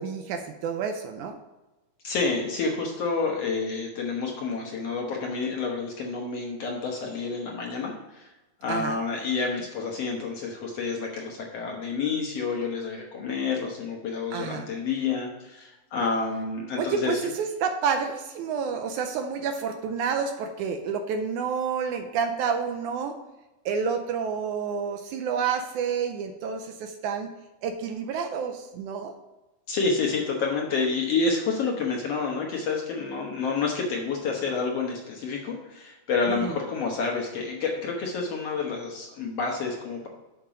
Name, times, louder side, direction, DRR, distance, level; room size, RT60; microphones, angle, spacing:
voice 1, 0.0-1.4 8.7-9.0 14.3-14.7 16.8-23.2 23.7-27.3 27.6-29.1 36.3-36.5, right 6 dB, 80° right, 6 dB, 1.9 m, -29 dB
voice 2, 2.0-8.3 8.6-17.2 29.7-40.1, left 4 dB, 65° left, 0 dB, 1.7 m, -29 dB
7.3 x 5.9 x 5.0 m, 1.1 s
omnidirectional pair, 3.8 m